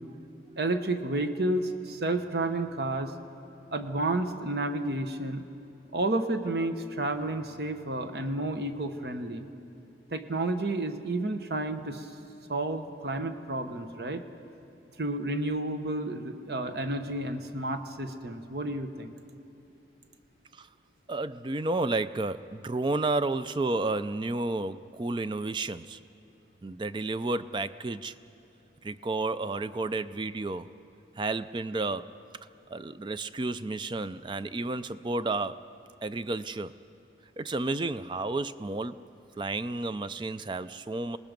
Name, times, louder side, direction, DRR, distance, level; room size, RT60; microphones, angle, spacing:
voice 1, 0.6-3.1 3.7-5.5 5.9-9.5 10.1-12.1 12.5-14.2 15.0-19.1, right 2 dB, 60° right, 7 dB, 1.0 m, -31 dB
voice 2, 21.1-26.0 26.6-28.2 28.8-30.7 31.2-32.1 32.7-35.6 36.0-36.7 37.4-39.0 39.4-41.2, right 2 dB, 25° right, 13 dB, 0.4 m, -31 dB
26.5 x 19.0 x 5.2 m, 2.7 s
head